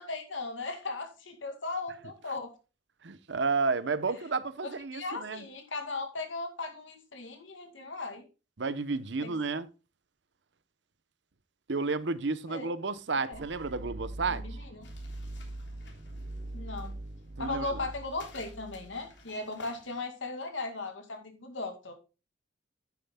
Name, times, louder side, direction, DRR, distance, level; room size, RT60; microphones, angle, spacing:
voice 1, 0.0-2.5 4.6-8.2 9.2-9.3 12.5-12.7 13.2-13.4 14.3-14.8 16.5-16.9 17.4-21.9, left 3 dB, 85° left, 2.2 m, -37 dB
voice 2, 3.0-5.4 8.6-9.7 11.7-14.4 17.4-17.8, right 4 dB, 65° right, 0.8 m, -31 dB
sound 1, 13.3-19.2, right 1 dB, 40° right, 0.9 m, -42 dB
sound 2, 14.8-20.0, left 2 dB, 65° left, 3.2 m, -55 dB
10.5 x 9.5 x 2.2 m
head